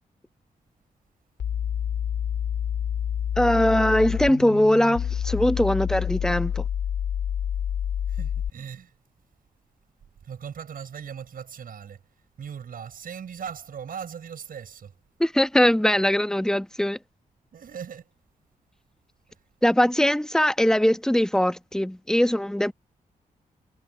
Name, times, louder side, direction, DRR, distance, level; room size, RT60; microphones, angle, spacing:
sound 1, 1.4-8.5, left 9 dB, 85° left, 2.2 m, -28 dB
voice 1, 3.4-6.6 15.2-17.0 19.6-22.7, left 1 dB, 5° left, 1.2 m, -21 dB
voice 2, 8.1-8.9 10.2-12.0 12.4-14.9 17.5-18.1, right 7 dB, 70° right, 6.6 m, -39 dB
cardioid pair, 80°, 15 cm